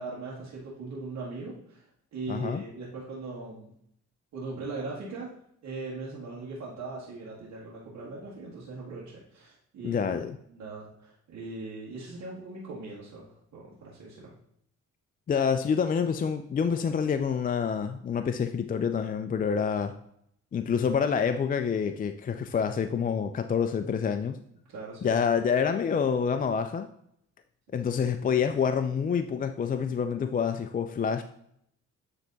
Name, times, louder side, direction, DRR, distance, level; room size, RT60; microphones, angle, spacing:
voice 1, 0.0-3.7 4.3-5.3 5.6-10.1 10.5-14.3 24.7-25.2, right 3 dB, 70° right, -7 dB, 1.8 m, -40 dB
voice 2, 2.3-2.6 9.8-10.3 15.3-20.0 20.5-24.4 25.0-26.9 27.7-31.2, left 6 dB, 30° left, 8 dB, 0.4 m, -27 dB
9.0 x 3.4 x 3.9 m, 0.71 s
cardioid pair, 90°, 30 cm